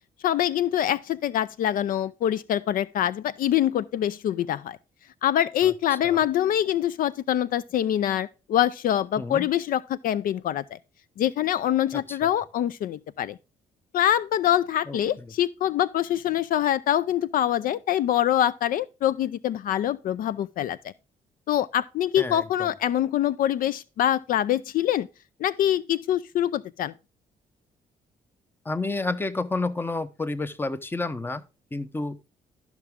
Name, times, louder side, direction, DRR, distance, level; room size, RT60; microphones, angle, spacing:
voice 1, 0.2-4.8 5.2-10.8 11.2-13.4 13.9-20.9 21.5-25.1 25.4-26.9, left 11 dB, 70° left, 0.4 m, -24 dB
voice 2, 14.9-15.3 22.2-22.7 28.6-31.4 31.7-32.2, left 3 dB, 15° left, 0.8 m, -30 dB
12.5 x 6.0 x 3.6 m
cardioid pair, 80°, 15 cm